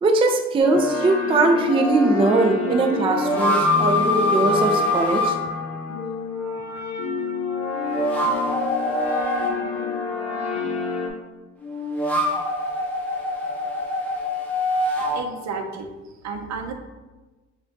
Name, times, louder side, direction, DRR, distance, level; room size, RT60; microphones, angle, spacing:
voice 1, 0.0-5.4, right 2 dB, 20° right, 4 dB, 0.3 m, -20 dB
sound 1, 0.6-11.1, left 4 dB, 65° left, 0.7 m, -28 dB
sound 2, 0.7-0.9 2.9-5.3 7.7-9.5 11.6-15.2, left 1 dB, 5° left, 0.8 m, -24 dB
voice 2, 15.1-16.7, right 4 dB, 65° right, 4 dB, 0.6 m, -32 dB
4.2 x 2.3 x 3.7 m, 1.2 s
cardioid pair, 90°, 30 cm